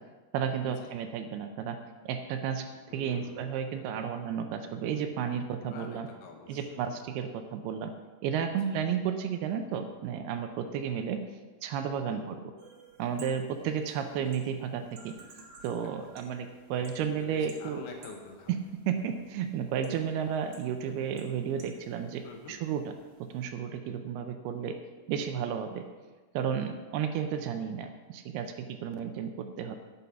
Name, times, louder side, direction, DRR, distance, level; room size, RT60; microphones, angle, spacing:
voice 1, 0.3-1.8 2.1-2.7 2.9-6.1 6.5-7.9 8.2-11.2 11.6-12.4 13.0-15.1 15.6-17.8 18.9-22.8 23.2-24.8 25.1-25.9 26.3-29.8, right 8 dB, 80° right, 7 dB, 2.5 m, -32 dB
voice 2, 2.9-3.7 5.6-6.8 8.6-8.8 12.1-12.3 16.8-18.5 22.2-22.6, left 4 dB, 75° left, 3 dB, 3.0 m, -47 dB
sound 1, 12.6-23.4, right 4 dB, 55° right, 2.5 m, -56 dB
9.3 x 8.3 x 5.8 m, 1.3 s
omnidirectional pair, 4.8 m